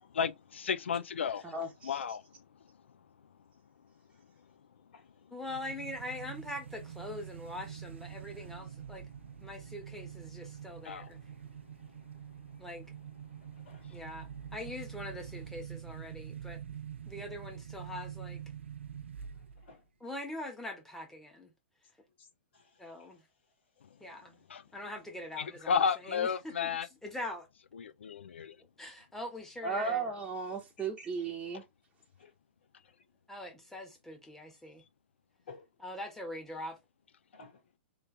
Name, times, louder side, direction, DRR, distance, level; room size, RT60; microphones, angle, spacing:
voice 1, 0.1-1.4 1.8-2.2 10.8-11.1 24.5-24.6 25.4-26.9 27.8-28.6, left 6 dB, 80° left, 0.5 m, -32 dB
voice 2, 1.4-2.0 29.6-31.6, right 4 dB, 15° right, 1.0 m, -35 dB
voice 3, 5.3-9.1 9.4-11.2 12.6-12.9 13.9-16.6 17.1-18.4 20.0-21.5 22.8-23.2 24.0-24.4 24.7-27.5 28.8-30.1 33.3-34.8 35.8-36.8, left 1 dB, 5° left, 1.4 m, -43 dB
sound 1, 5.5-19.7, right 9 dB, 80° right, 0.4 m, -46 dB
voice 4, 13.5-14.0 19.2-19.9 22.2-22.3 22.5-23.2 23.9-24.3 30.8-30.9 32.2-32.3 32.8-33.0 35.5-35.7 37.3-37.6, left 4 dB, 60° left, 1.9 m, -56 dB
3.3 x 3.1 x 3.3 m
hypercardioid pair, 115°, 6 cm